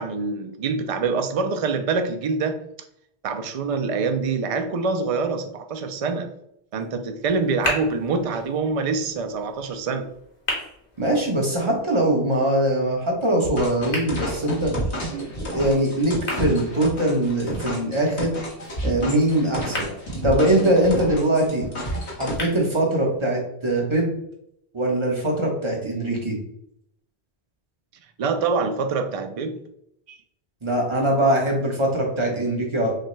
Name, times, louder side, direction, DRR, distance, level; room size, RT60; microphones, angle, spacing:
voice 1, 0.0-2.6 3.2-6.3 6.7-10.1 28.2-29.6 30.1-30.2, right 4 dB, 55° right, 7 dB, 0.4 m, -25 dB
sound 1, 7.2-23.2, left 2 dB, 55° left, 1.5 m, -38 dB
voice 2, 11.0-14.7 15.5-18.4 18.8-19.9 20.2-21.7 22.2-24.1 24.7-26.4 30.6-32.9, right 1 dB, 30° right, -1 dB, 1.0 m, -22 dB
sound 2, 13.4-22.4, right 1 dB, 80° left, 1.6 m, -30 dB
6.5 x 2.2 x 3.1 m, 0.76 s
omnidirectional pair, 1.1 m